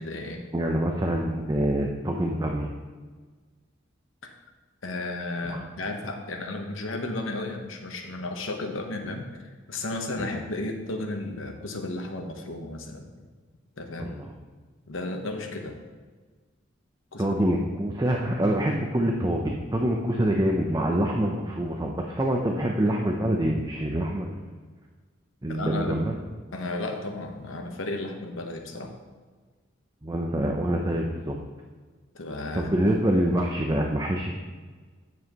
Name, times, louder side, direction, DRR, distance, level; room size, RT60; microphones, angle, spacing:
voice 1, 0.0-0.4 4.2-4.3 4.8-13.3 13.8-14.1 14.9-15.8 17.1-17.4 25.5-26.0 26.5-28.9 32.1-32.7, left 2 dB, 85° left, 4 dB, 1.0 m, -33 dB
voice 2, 0.5-2.7 5.5-5.6 10.2-10.3 14.0-14.3 17.2-24.4 25.4-26.2 30.0-31.4 32.5-34.3, right 1 dB, 20° right, 1 dB, 0.6 m, -26 dB
9.3 x 7.3 x 3.0 m, 1.4 s
head